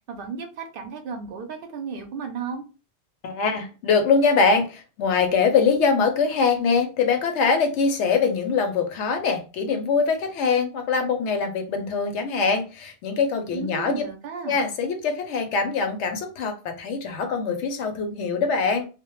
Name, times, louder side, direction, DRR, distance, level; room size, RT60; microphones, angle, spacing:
voice 1, 0.1-2.6 13.5-14.6, right 5 dB, 60° right, 0.7 m, -34 dB
voice 2, 3.2-14.0 14.5-18.8, left 5 dB, 90° left, 0.9 m, -23 dB
2.2 x 2.1 x 2.9 m
omnidirectional pair, 1.1 m